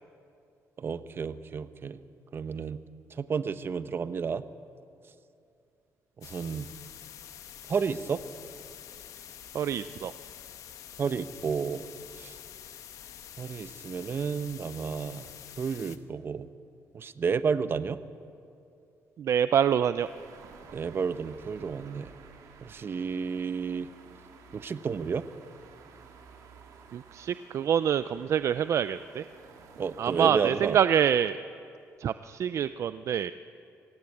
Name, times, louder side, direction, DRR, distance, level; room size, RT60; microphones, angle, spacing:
voice 1, 0.8-2.0 2.3-2.8 3.1-4.4 6.2-6.7 7.7-8.2 11.0-11.9 12.1-12.4 13.4-15.3 15.6-16.5 16.9-18.0 20.7-22.1 22.6-23.9 24.5-25.3 29.8-30.8, right 6 dB, 45° right, 12 dB, 1.0 m, -31 dB
sound 1, 6.2-16.0, left 10 dB, 75° left, 1.2 m, -47 dB
voice 2, 9.5-10.1 19.2-20.1 26.9-29.2 30.0-31.4 32.0-33.3, right 9 dB, 60° right, 13 dB, 0.5 m, -26 dB
sound 2, 19.9-30.8, right 5 dB, 85° right, 2.6 m, -53 dB
25.5 x 17.5 x 8.6 m, 2.5 s
cardioid pair, 105°, 6 cm